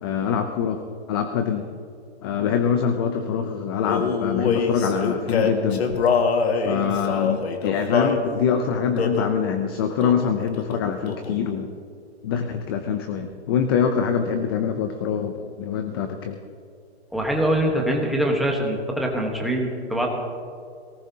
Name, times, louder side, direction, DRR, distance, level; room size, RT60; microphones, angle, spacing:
voice 1, 0.0-0.8 1.1-1.7 2.2-5.9 6.6-11.7 12.2-16.4, left 7 dB, 20° left, 7 dB, 0.5 m, -24 dB
Male singing, 3.8-8.2 9.0-9.4 10.0-10.3 10.6-11.5, left 5 dB, 70° left, 1.8 m, -24 dB
voice 2, 17.1-20.1, right 1 dB, ahead, -1 dB, 1.1 m, -23 dB
21.5 x 18.5 x 2.8 m, 2.3 s
hypercardioid pair, 160°, 33 cm